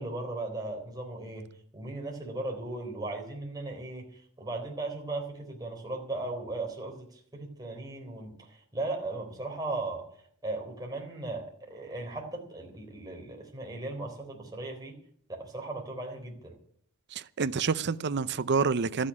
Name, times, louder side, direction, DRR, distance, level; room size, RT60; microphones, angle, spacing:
voice 1, 0.0-1.5 1.7-4.1 4.4-10.1 10.4-15.0 15.3-16.5, right 2 dB, 15° right, 3.8 m, -37 dB
voice 2, 17.1-19.1, right 5 dB, 50° right, 0.6 m, -28 dB
13.0 x 8.7 x 9.8 m
head